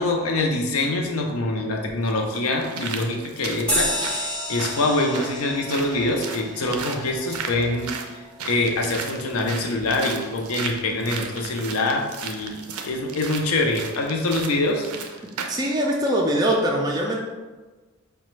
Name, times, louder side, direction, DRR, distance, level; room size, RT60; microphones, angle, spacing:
voice 1, 0.0-12.6 12.8-14.9, left 2 dB, 80° left, 2 dB, 0.6 m, -25 dB
sound 1, 1.2-1.3 2.1-15.7 16.1-16.2, right 5 dB, 90° right, 0.4 m, -35 dB
sound 2, 3.7-8.6, equal, 5° left, 0.7 m, -31 dB
voice 2, 15.5-17.2, right 1 dB, 20° right, -1 dB, 0.3 m, -22 dB
4.9 x 2.2 x 3.1 m, 1.3 s
head